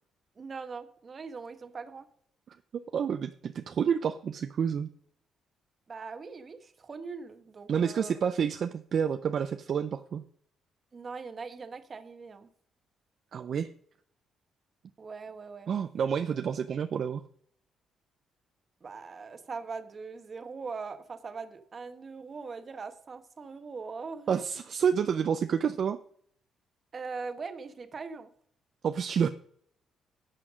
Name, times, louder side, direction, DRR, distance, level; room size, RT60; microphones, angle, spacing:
voice 1, 0.4-2.1 5.9-8.1 10.9-12.5 15.0-15.7 18.8-24.4 26.9-28.3, right 4 dB, 40° right, 9 dB, 1.2 m, -41 dB
voice 2, 2.9-4.9 7.7-10.2 13.3-13.7 15.7-17.2 24.3-26.0 28.8-29.3, right 7 dB, 55° right, 10 dB, 0.5 m, -29 dB
11.0 x 5.8 x 6.3 m, 0.63 s
cardioid pair, 90°, 0 cm